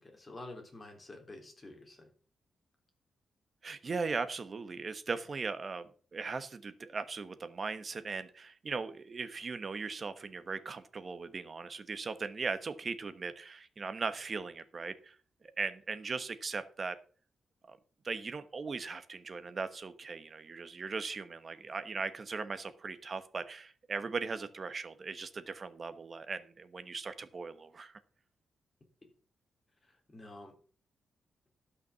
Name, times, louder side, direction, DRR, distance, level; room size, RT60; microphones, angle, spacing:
voice 1, 0.0-2.1 29.8-30.5, left 2 dB, 20° left, 2 dB, 3.4 m, -49 dB
voice 2, 3.6-15.2 15.6-17.0 17.7-17.8 18.0-28.0, right 4 dB, 40° right, 12 dB, 1.1 m, -39 dB
12.0 x 5.9 x 6.9 m, 0.42 s
cardioid pair, 125°, 0 cm